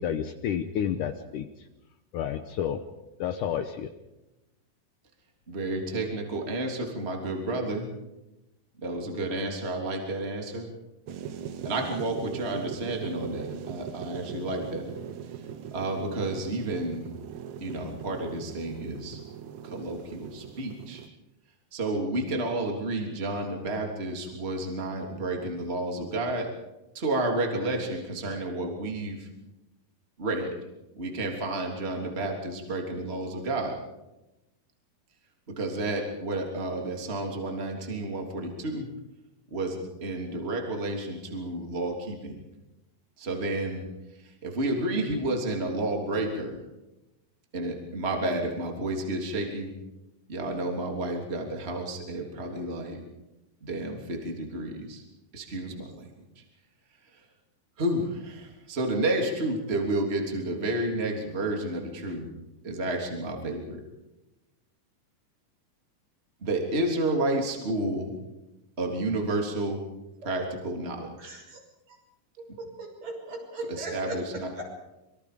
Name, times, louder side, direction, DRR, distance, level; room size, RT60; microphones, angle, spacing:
voice 1, 0.0-1.5 2.1-2.8 3.2-3.9, left 9 dB, 70° left, 8 dB, 2.2 m, -30 dB
voice 2, 5.5-7.9 8.8-10.7 11.6-14.9 15.7-17.1 17.6-19.2 19.6-21.0 21.7-26.5 26.9-29.3 30.2-30.5 30.9-33.8 35.5-38.9 39.5-42.4 43.2-43.8 44.2-46.6 47.5-49.7 50.3-53.0 53.6-55.0 55.3-56.0 57.8-62.3 62.6-63.8 66.4-68.1 68.8-69.8 70.2-71.3 73.7-74.5, right 2 dB, 15° right, 2 dB, 3.1 m, -31 dB
sound 1, 11.1-21.1, right 9 dB, 60° right, 2.0 m, -40 dB
voice 3, 71.2-71.6 71.9-72.0 72.4-74.8, right 2 dB, 45° right, 1 dB, 7.1 m, -38 dB
26.0 x 24.0 x 5.1 m, 0.97 s
omnidirectional pair, 4.4 m